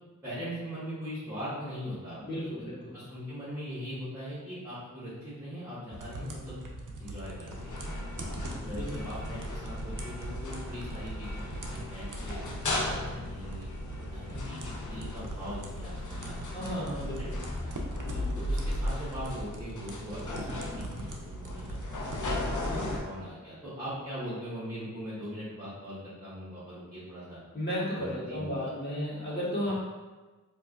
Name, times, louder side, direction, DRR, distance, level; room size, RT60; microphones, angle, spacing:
voice 1, 0.2-2.5 2.9-6.6 7.0-7.9 8.6-13.6 14.1-16.4 16.7-17.8 18.3-27.4 27.9-28.7, equal, 10° right, -11 dB, 1.4 m, -41 dB
voice 2, 2.2-3.0 8.6-9.1 16.5-17.4 18.0-18.3 22.7-22.9 27.5-29.7, equal, 35° left, -9 dB, 1.5 m, -34 dB
sound 1, 5.9-22.6, right 2 dB, 75° right, 0.5 m, -42 dB
sound 2, 7.5-23.0, left 1 dB, 70° left, 0.6 m, -36 dB
4.6 x 2.5 x 2.4 m, 1.3 s
wide cardioid pair, 50°, 31 cm